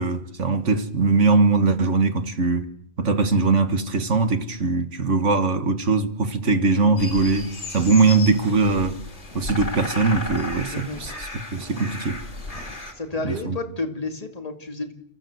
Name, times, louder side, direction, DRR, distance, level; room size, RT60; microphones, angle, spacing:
voice 1, 0.0-2.7 3.0-9.0 9.3-12.2 13.2-13.6, right 4 dB, 85° right, 2.0 m, -21 dB
sound 1, 7.0-12.9, left 2 dB, 70° left, 3.1 m, -34 dB
sound 2, 7.8-8.8 9.1-9.7 10.0-11.2 11.5-11.9 12.3-13.4, equal, 25° right, 6.1 m, -46 dB
voice 2, 12.9-14.9, left 2 dB, 30° left, 2.7 m, -31 dB
29.5 x 15.0 x 7.9 m
omnidirectional pair, 1.2 m